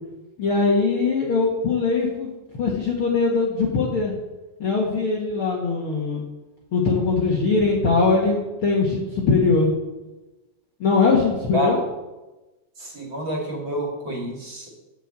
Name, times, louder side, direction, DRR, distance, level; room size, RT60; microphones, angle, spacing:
voice 1, 0.4-4.1 4.6-6.2 6.7-9.7 10.8-11.8, left 4 dB, 50° left, -3 dB, 1.9 m, -21 dB
voice 2, 12.8-14.7, equal, 35° right, -2 dB, 2.8 m, -28 dB
9.5 x 7.5 x 7.6 m, 1.1 s
omnidirectional pair, 4.0 m